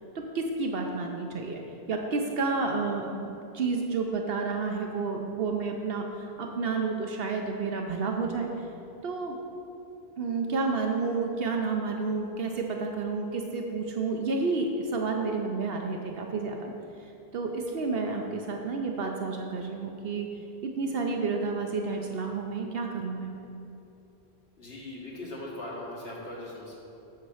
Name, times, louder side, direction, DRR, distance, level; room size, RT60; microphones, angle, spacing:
voice 1, 0.1-1.6 1.9-8.5 9.0-9.4 10.2-16.7 17.3-20.3 20.6-23.3, right 4 dB, 70° right, 2 dB, 0.9 m, -30 dB
voice 2, 24.6-26.8, left 1 dB, 80° left, -4 dB, 2.0 m, -39 dB
7.6 x 7.4 x 5.6 m, 2.8 s
omnidirectional pair, 1.0 m